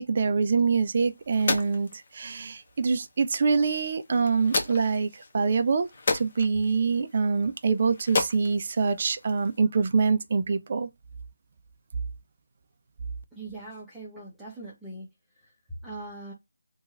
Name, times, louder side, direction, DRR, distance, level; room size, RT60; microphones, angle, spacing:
voice 1, 0.0-1.9 2.1-5.1 5.3-5.9 6.1-10.9, right 5 dB, 40° right, 0.3 m, -25 dB
sound 1, 0.6-9.6, left 3 dB, 40° left, 0.8 m, -35 dB
voice 2, 13.3-15.1 15.8-16.3, right 2 dB, 5° right, 0.7 m, -41 dB
3.0 x 2.2 x 2.4 m
figure-of-eight pair, 160°, 0 cm